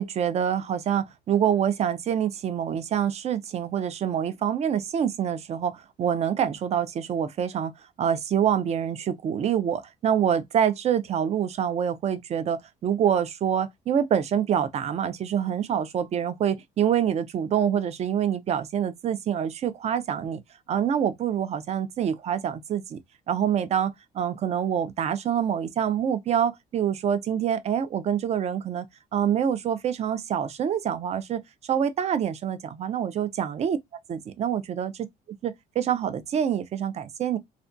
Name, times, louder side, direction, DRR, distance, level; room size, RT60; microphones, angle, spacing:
voice 1, 0.0-7.7 8.0-20.4 20.7-23.0 23.3-28.9 29.1-31.4 31.7-33.8 34.1-34.9 35.4-37.4, right 9 dB, 40° right, 0.4 m, -26 dB
2.4 x 2.1 x 2.5 m
cardioid pair, 110°, 17 cm